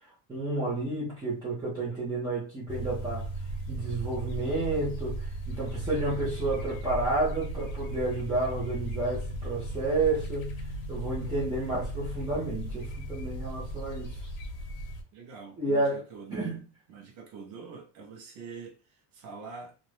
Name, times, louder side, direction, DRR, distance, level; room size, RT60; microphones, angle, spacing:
voice 1, 0.3-3.3 3.7-10.5 10.9-14.3 15.6-16.0 16.3-16.6, right 2 dB, 10° right, 0.4 m, -30 dB
sound 1, 2.7-15.0, right 1 dB, 60° left, 0.8 m, -36 dB
voice 2, 15.1-16.5 16.9-19.8, right 5 dB, 40° right, 0.7 m, -45 dB
2.5 x 2.0 x 3.0 m
cardioid pair, 175°, 45 cm